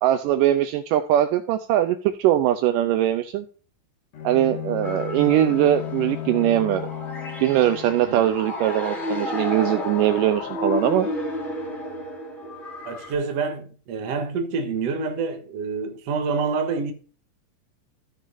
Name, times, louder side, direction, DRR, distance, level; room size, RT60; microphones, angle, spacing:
voice 1, 0.0-3.5 4.2-6.9 7.4-11.1, right 12 dB, 80° right, 2.1 m, -21 dB
Bowed string instrument, 4.1-8.2, left 11 dB, 60° left, 1.9 m, -34 dB
sound 1, 4.8-13.1, left 1 dB, 20° left, 2.5 m, -32 dB
sound 2, 5.3-11.0, left 10 dB, 75° left, 1.8 m, -40 dB
voice 2, 12.9-16.9, right 4 dB, 60° right, 1.9 m, -27 dB
15.0 x 6.1 x 2.6 m
omnidirectional pair, 4.2 m